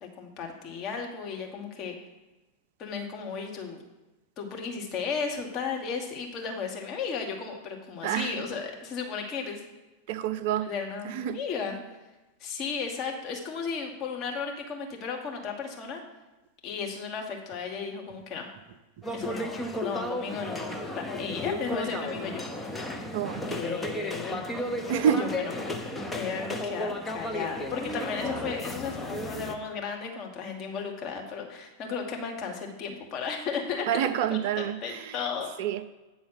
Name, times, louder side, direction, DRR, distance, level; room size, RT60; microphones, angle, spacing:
voice 1, 0.0-1.9 2.8-3.8 4.4-9.6 10.6-11.8 12.4-16.0 16.6-18.5 19.1-22.4 23.5-24.7 25.2-25.6 26.1-35.5, left 5 dB, 35° left, 1 dB, 1.4 m, -35 dB
voice 2, 8.0-8.4 10.1-10.7 11.0-11.4 23.1-23.5 24.9-25.3 33.9-35.2 35.6-35.8, right 9 dB, 50° right, 12 dB, 0.4 m, -28 dB
sound 1, 19.0-29.6, left 1 dB, 10° left, 0.7 m, -33 dB
8.7 x 4.1 x 5.8 m, 1.1 s
figure-of-eight pair, 90°, 0 cm